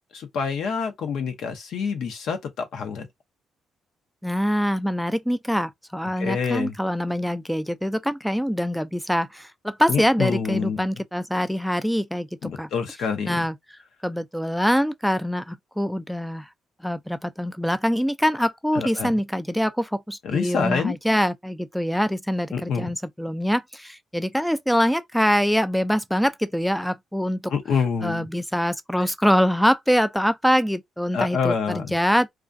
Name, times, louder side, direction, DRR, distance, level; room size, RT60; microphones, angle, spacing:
voice 1, 0.1-3.1 6.2-6.7 9.9-10.9 12.4-13.4 18.7-19.1 20.2-20.9 22.5-22.9 27.5-28.3 31.1-31.9, left 6 dB, 70° left, 0.7 m, -27 dB
voice 2, 4.2-12.3 12.6-12.7 13.2-13.6 14.0-16.5 16.8-27.5 28.0-32.3, equal, ahead, 0.4 m, -24 dB
2.3 x 2.3 x 2.5 m
cardioid pair, 90°, 0 cm